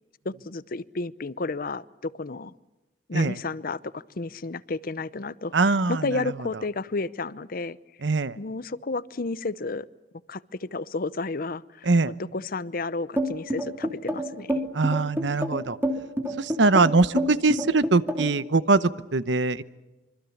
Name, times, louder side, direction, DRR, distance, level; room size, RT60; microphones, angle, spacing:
voice 1, 0.2-2.5 3.1-7.8 8.4-9.9 10.3-14.6, left 3 dB, 55° left, 18 dB, 0.7 m, -32 dB
voice 2, 5.5-6.2 8.0-8.3 11.9-12.1 14.7-15.8 16.4-19.6, right 3 dB, 85° right, 16 dB, 0.9 m, -22 dB
sound 1, 13.2-18.4, right 1 dB, 10° right, 3.1 m, -27 dB
25.5 x 24.5 x 7.2 m, 1.1 s
head